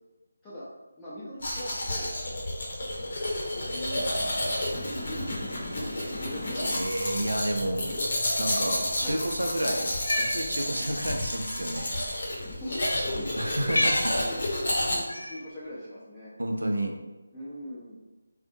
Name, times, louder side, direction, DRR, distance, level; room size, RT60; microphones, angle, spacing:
voice 1, 1.0-2.1 3.5-5.3 5.8-6.9 8.9-9.3 12.5-13.3 13.7-16.3 17.3-18.0, left 1 dB, 10° left, -11 dB, 0.5 m, -41 dB
Domestic sounds home sounds, 1.4-15.0, left 1 dB, 50° left, 0.7 m, -31 dB
voice 2, 6.6-7.8 8.4-9.9 10.2-11.9 13.4-14.3 16.4-16.9, right 1 dB, 85° right, 2 dB, 0.5 m, -30 dB
Cat, 9.9-10.4 11.4-11.6 12.7-13.0 13.6-14.1 15.1-15.4, left 1 dB, 85° left, 0.4 m, -28 dB
2.5 x 2.1 x 2.6 m, 1.1 s
figure-of-eight pair, 165°, 0 cm